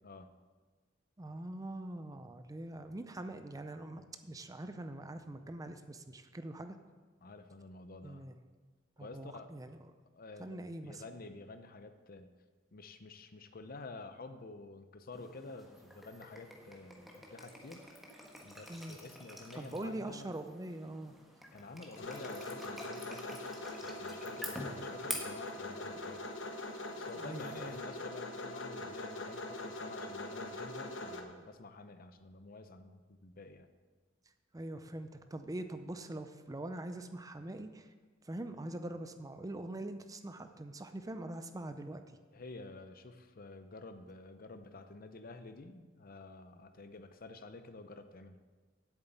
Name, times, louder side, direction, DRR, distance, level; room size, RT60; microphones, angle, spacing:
voice 1, 1.2-6.8 8.0-8.4 9.0-9.8 10.4-11.0 18.7-19.0 19.5-21.1 27.2-27.8 34.5-37.9 38.2-42.2, right 1 dB, 20° right, 8 dB, 0.5 m, -43 dB
voice 2, 7.2-8.3 9.0-9.5 10.1-12.3 12.7-17.8 18.4-20.3 21.5-23.5 23.8-26.4 27.0-33.7 42.3-48.4, left 3 dB, 50° left, 9 dB, 0.7 m, -50 dB
sound 1, 15.1-27.8, equal, ahead, 1.4 m, -49 dB
sound 2, 21.9-31.2, left 2 dB, 70° left, 1.1 m, -42 dB
8.2 x 7.2 x 8.0 m, 1.4 s
head